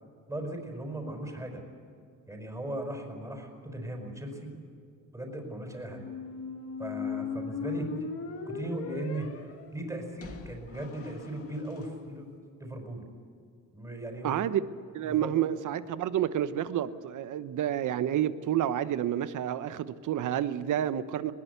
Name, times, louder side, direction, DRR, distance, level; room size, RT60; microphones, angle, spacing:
voice 1, 0.3-1.6 2.3-4.5 5.1-6.0 6.8-7.9 8.5-9.5 9.7-12.3 12.6-13.0 13.7-14.4 15.0-15.3, right 1 dB, 10° right, 5.1 m, -37 dB
sound 1, 5.9-11.8, left 5 dB, 40° left, 2.1 m, -38 dB
voice 2, 14.2-14.6 14.9-21.3, right 11 dB, 60° right, 1.1 m, -29 dB
20.5 x 20.5 x 8.3 m
cardioid pair, 120°, 34 cm